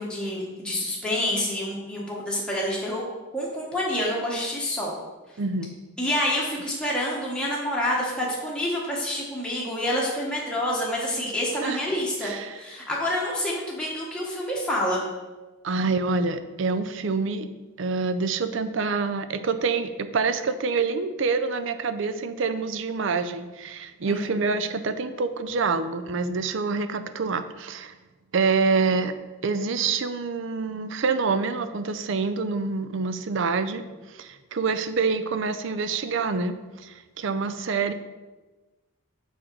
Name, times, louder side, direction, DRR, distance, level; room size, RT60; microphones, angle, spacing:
voice 1, 0.0-3.0 3.3-4.9 6.0-15.0 24.1-24.4, left 1 dB, 5° left, -5 dB, 1.1 m, -28 dB
voice 2, 5.4-5.8 11.6-11.8 12.2-12.5 15.6-17.5 17.8-27.9 28.3-29.1 29.4-37.9, right 4 dB, 55° right, 11 dB, 0.4 m, -26 dB
6.3 x 5.1 x 4.5 m, 1.2 s
head